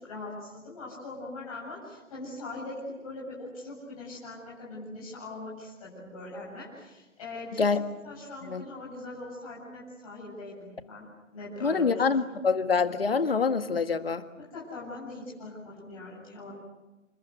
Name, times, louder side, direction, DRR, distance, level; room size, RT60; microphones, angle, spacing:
voice 1, 0.0-7.7 8.0-11.1 11.3-12.4 14.4-16.5, left 2 dB, 25° left, -5 dB, 7.7 m, -41 dB
voice 2, 11.6-14.2, left 5 dB, 45° left, 10 dB, 1.8 m, -25 dB
28.5 x 25.0 x 8.2 m, 1.1 s
figure-of-eight pair, 150°, 39 cm